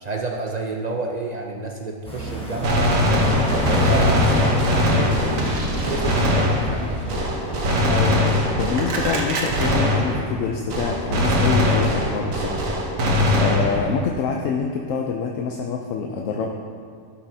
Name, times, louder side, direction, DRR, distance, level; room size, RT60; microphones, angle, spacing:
voice 1, 0.0-5.4 5.7-7.2, right 2 dB, 55° right, 1 dB, 0.4 m, -30 dB
sound 1, 2.0-8.2, left 2 dB, 5° left, 1.2 m, -28 dB
Gunshot gunfire, 2.6-10.4 10.7-14.1, left 1 dB, 75° right, 1.4 m, -21 dB
voice 2, 7.9-12.7 13.4-16.5, left 5 dB, 75° left, 1 dB, 1.0 m, -26 dB
12.5 x 7.2 x 2.7 m, 2.1 s
omnidirectional pair, 1.4 m